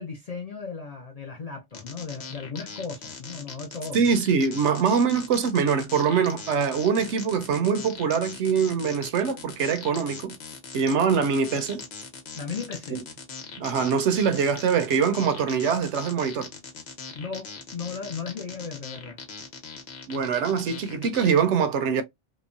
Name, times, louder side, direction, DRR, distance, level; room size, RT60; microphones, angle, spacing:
voice 1, 0.0-4.0 12.3-13.0 17.1-19.2, left 5 dB, 55° left, 0.4 m, -36 dB
sound 1, 1.7-21.4, left 5 dB, 90° left, 1.1 m, -41 dB
voice 2, 3.9-10.4 10.7-11.8 12.9-13.0 13.6-16.5 20.1-22.0, right 6 dB, 85° right, 0.9 m, -23 dB
2.9 x 2.0 x 2.4 m
omnidirectional pair, 1.2 m